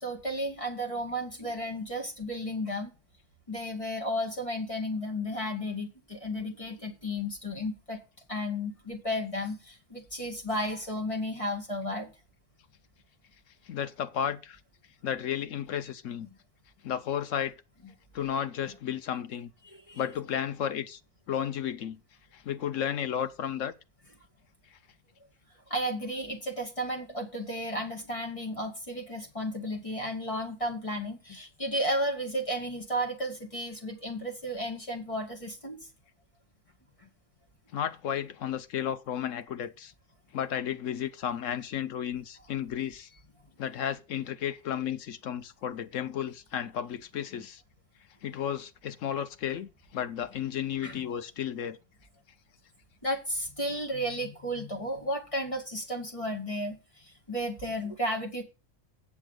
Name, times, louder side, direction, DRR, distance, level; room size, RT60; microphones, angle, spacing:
voice 1, 0.0-2.9 3.5-8.0 8.3-12.1 19.6-20.0 25.7-35.8 47.3-47.4 50.8-51.0 53.0-58.4, equal, 25° left, 1.9 m, -33 dB
voice 2, 13.7-14.6 15.0-16.3 16.8-17.5 18.1-19.5 19.9-21.0 21.3-22.0 22.3-23.7 37.7-39.9 40.3-43.1 43.6-47.6 48.2-51.8, left 9 dB, 80° left, 1.1 m, -33 dB
7.7 x 7.1 x 6.5 m
omnidirectional pair, 1.3 m